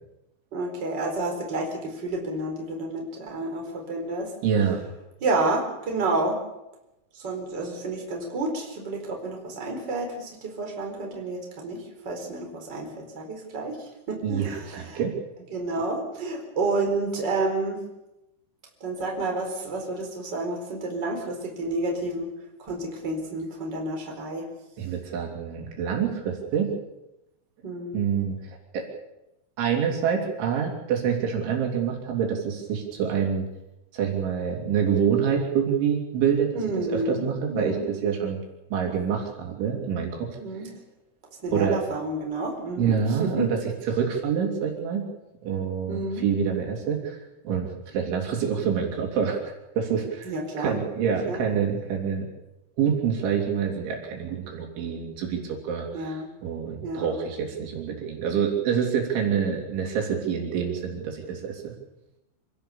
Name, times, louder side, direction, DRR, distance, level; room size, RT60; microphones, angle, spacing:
voice 1, 0.5-4.3 5.2-6.4 7.1-11.8 12.0-15.0 15.5-17.8 18.8-22.3 22.6-24.5 27.6-28.0 36.5-37.8 40.4-40.7 41.4-43.5 45.9-46.2 50.2-50.8 51.3-51.4 55.9-56.3 56.8-57.2, right 2 dB, 20° right, 1 dB, 4.5 m, -30 dB
voice 2, 4.4-4.8 14.2-15.1 24.8-26.7 27.9-28.9 29.6-33.4 33.9-36.5 36.9-38.4 38.7-40.3 41.5-41.8 42.8-43.6 43.9-45.0 45.4-47.2 47.5-49.4 49.8-52.3 52.8-61.7, right 7 dB, 70° right, 1 dB, 5.4 m, -26 dB
27.0 x 17.0 x 7.1 m, 0.93 s
omnidirectional pair, 5.7 m